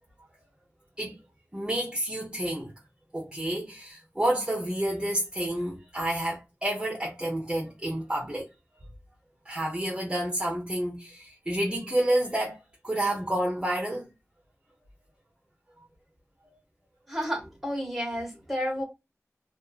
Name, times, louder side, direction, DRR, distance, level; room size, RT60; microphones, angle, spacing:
voice 1, 1.5-2.7 3.1-8.5 9.4-12.6 12.8-14.1 15.8-15.9, right 1 dB, 20° right, 0.7 m, -29 dB
voice 2, 17.1-18.8, equal, ahead, 1.4 m, -31 dB
2.6 x 2.5 x 2.4 m
wide cardioid pair, 45°, 6 cm